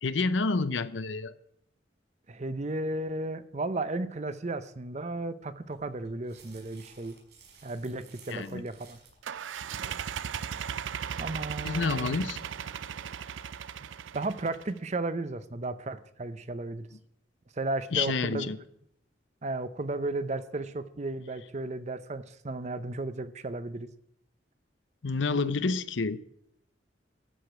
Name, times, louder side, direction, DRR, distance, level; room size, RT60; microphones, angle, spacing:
voice 1, 0.0-1.3 8.3-8.6 11.6-12.4 17.9-18.6 25.0-26.2, left 4 dB, 80° left, 14 dB, 0.7 m, -29 dB
voice 2, 2.3-7.2 7.6-9.0 11.2-12.1 14.1-16.9 17.6-18.5 19.4-23.9, right 2 dB, 35° right, 13 dB, 0.6 m, -34 dB
sound 1, 5.6-9.2, right 5 dB, 65° right, 5.3 m, -57 dB
sound 2, 9.2-14.8, right 8 dB, 85° right, 0.4 m, -37 dB
14.0 x 5.0 x 9.0 m, 0.74 s
head